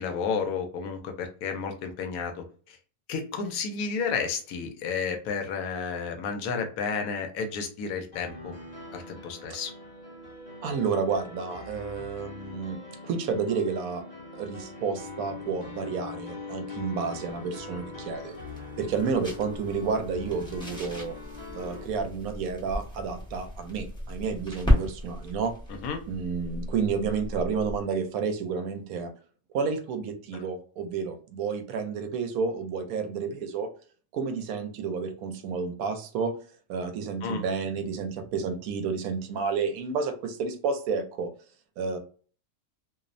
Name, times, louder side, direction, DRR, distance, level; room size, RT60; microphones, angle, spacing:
voice 1, 0.0-2.3 2.7-2.8 3.1-8.5 8.9-9.7 25.8-26.0 37.2-37.4, left 5 dB, 85° left, 5 dB, 1.0 m, -31 dB
sound 1, 8.1-21.8, left 3 dB, 35° left, 0.8 m, -42 dB
voice 2, 10.6-14.0 14.3-18.4 18.8-21.2 21.5-25.5 26.1-29.1 29.5-33.7 34.1-36.3 36.7-41.3 41.8-42.0, right 5 dB, 85° right, 7 dB, 1.0 m, -30 dB
sound 2, 17.3-27.9, left 1 dB, 5° left, 0.5 m, -33 dB
2.7 x 2.0 x 2.5 m, 0.41 s
omnidirectional pair, 1.5 m